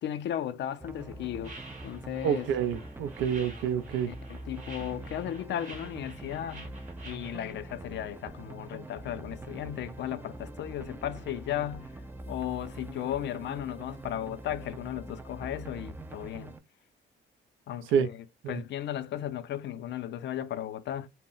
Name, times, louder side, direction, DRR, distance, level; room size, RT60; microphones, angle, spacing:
voice 1, 0.0-1.6 1.8-2.5 4.1-6.7 7.0-11.9 12.3-16.5 17.7-21.1, left 11 dB, 65° left, 0.4 m, -35 dB
sound 1, 0.8-16.6, right 2 dB, 10° right, 0.3 m, -44 dB
sound 2, 1.4-7.5, right 3 dB, 40° right, 0.9 m, -49 dB
voice 2, 2.2-4.1 17.9-18.1 18.4-18.6, right 8 dB, 80° right, 0.4 m, -28 dB
2.1 x 2.0 x 3.7 m
cardioid pair, 90°, 20 cm